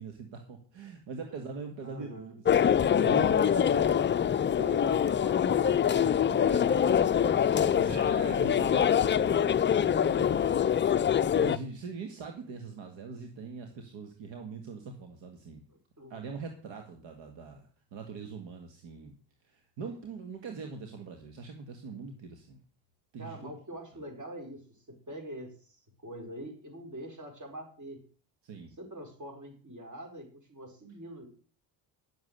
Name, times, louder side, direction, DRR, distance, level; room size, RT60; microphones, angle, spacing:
voice 1, 0.0-3.5 6.5-6.8 7.7-10.7 11.4-15.6 16.1-19.2 19.4-22.6 23.1-23.5 28.4-28.7, right 4 dB, 65° right, 4 dB, 1.9 m, -42 dB
voice 2, 1.8-2.4 3.0-4.0 4.4-8.2 16.0-16.2 23.2-28.0 28.8-31.3, right 1 dB, 35° right, 4 dB, 4.9 m, -44 dB
sound 1, 2.5-11.6, left 8 dB, 25° left, 0.5 m, -24 dB
10.5 x 7.5 x 6.5 m, 0.43 s
supercardioid pair, 75°, 49 cm